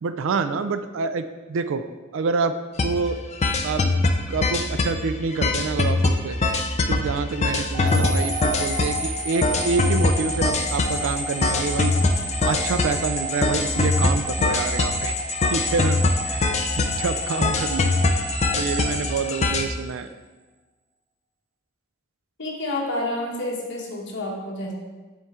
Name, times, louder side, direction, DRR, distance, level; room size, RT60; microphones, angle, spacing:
voice 1, 0.0-1.8 2.1-2.5 2.8-3.2 3.6-3.8 4.3-6.4 6.9-11.9 12.4-16.4 16.7-17.9 18.6-20.1, right 4 dB, 70° right, 10 dB, 0.4 m, -27 dB
sound 1, 2.8-3.0 3.3-5.0 5.3-19.6, left 2 dB, 35° left, 0.5 m, -23 dB
sound 2, 7.7-19.9, equal, 15° right, 0.8 m, -31 dB
voice 2, 22.4-24.7, left 1 dB, 60° left, -2 dB, 1.3 m, -29 dB
6.9 x 4.6 x 3.7 m, 1.3 s
head